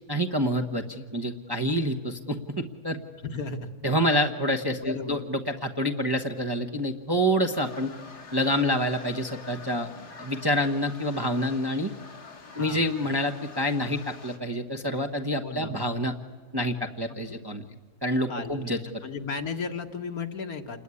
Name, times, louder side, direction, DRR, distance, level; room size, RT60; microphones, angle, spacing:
voice 1, 0.1-3.0 3.8-7.9 8.3-9.9 10.2-11.9 12.5-16.1 16.5-17.6 18.0-18.8, equal, 15° right, 4 dB, 1.1 m, -27 dB
voice 2, 3.3-3.7 4.8-5.3 12.6-12.9 15.4-15.7 17.3-17.4 18.3-18.7 19.0-20.8, left 4 dB, 65° left, 5 dB, 2.1 m, -34 dB
sound 1, 7.5-14.4, left 4 dB, 80° left, 2.9 m, -46 dB
28.5 x 20.5 x 9.8 m, 1.5 s
omnidirectional pair, 1.7 m